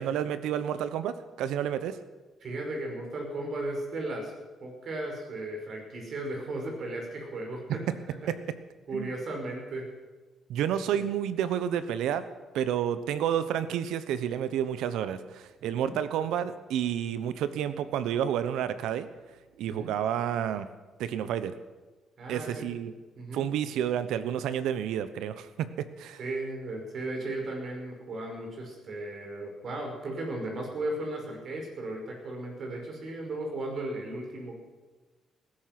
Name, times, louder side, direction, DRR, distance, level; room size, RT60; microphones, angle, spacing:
voice 1, 0.0-2.0 8.3-8.4 8.9-9.1 10.5-12.2 12.5-19.1 19.6-20.7 21.0-21.5 22.3-22.9 23.3-25.5 25.8-26.2, right 9 dB, 85° right, 13 dB, 1.0 m, -30 dB
voice 2, 2.4-4.3 4.6-7.8 8.2-8.3 8.9-9.9 15.6-15.9 19.7-19.9 22.2-22.7 23.2-23.4 26.2-34.6, right 2 dB, 55° right, 1 dB, 5.4 m, -36 dB
19.5 x 11.5 x 6.1 m, 1.3 s
cardioid pair, 90°, 0 cm